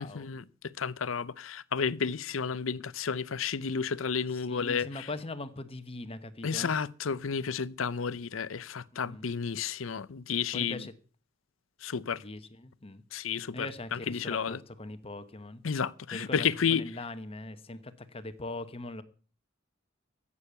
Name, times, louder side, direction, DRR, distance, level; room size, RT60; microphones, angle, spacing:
voice 1, 0.0-5.1 6.4-10.9 11.8-12.2 13.1-14.6 15.6-16.8, left 6 dB, 90° left, 0.6 m, -32 dB
voice 2, 4.5-6.8 9.0-9.3 10.5-10.9 12.2-13.0 13.5-15.6 16.1-19.0, left 2 dB, 30° left, 1.0 m, -41 dB
14.5 x 8.5 x 7.0 m
head